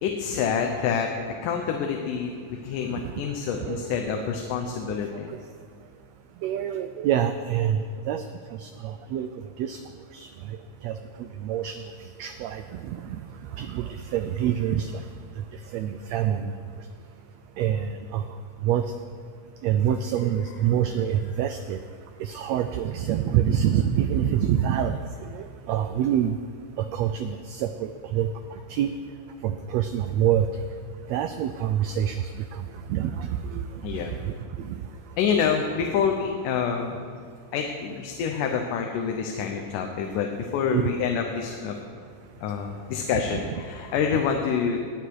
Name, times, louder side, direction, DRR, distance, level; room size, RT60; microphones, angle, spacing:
voice 1, 0.0-5.4 33.8-34.1 35.2-37.0 37.5-41.8 42.4-44.8, left 6 dB, 90° left, 3 dB, 2.5 m, -27 dB
voice 2, 3.6-4.3 5.3-5.4 6.4-8.2 8.6-9.3 9.6-9.8 10.1-10.6 10.8-11.8 12.2-13.2 13.6-15.0 15.4-16.5 17.6-18.2 18.6-18.8 19.6-21.8 22.2-26.4 26.8-28.9 29.4-30.5 31.1-33.7 34.2-34.8 40.7-40.9 43.3-43.4, right 10 dB, 85° right, 9 dB, 1.5 m, -26 dB
19.0 x 9.0 x 4.8 m, 2.2 s
omnidirectional pair, 3.6 m